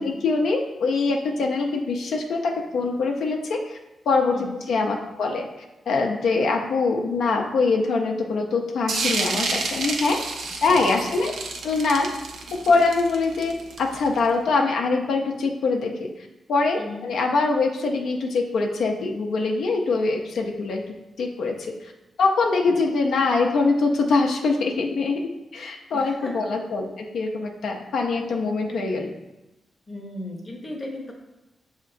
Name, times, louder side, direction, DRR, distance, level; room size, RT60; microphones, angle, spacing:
voice 1, 0.0-3.8 4.1-4.4 4.7-5.5 5.9-10.2 10.6-11.3 11.6-12.1 12.5-16.1 16.5-20.8 21.2-21.7 22.2-29.1, left 3 dB, 80° left, 1 dB, 0.4 m, -23 dB
sound 1, 8.9-14.2, right 3 dB, 85° right, 0.5 m, -29 dB
voice 2, 10.4-11.0 16.8-17.1 25.9-26.5 29.9-31.1, left 1 dB, 20° left, 0 dB, 0.7 m, -37 dB
6.4 x 2.8 x 2.5 m, 1.0 s
wide cardioid pair, 150°, 0 cm